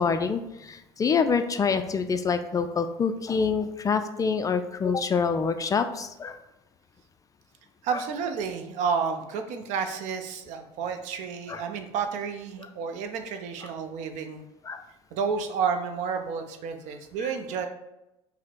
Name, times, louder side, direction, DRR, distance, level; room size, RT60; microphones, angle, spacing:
voice 1, 0.0-6.4 7.9-8.0 11.5-11.6 14.6-14.9 17.2-17.3, left 5 dB, 25° left, 8 dB, 0.3 m, -26 dB
voice 2, 7.8-14.4 15.1-17.7, right 6 dB, 55° right, 7 dB, 0.6 m, -30 dB
5.6 x 2.1 x 4.5 m, 0.92 s
hypercardioid pair, 65°, 15 cm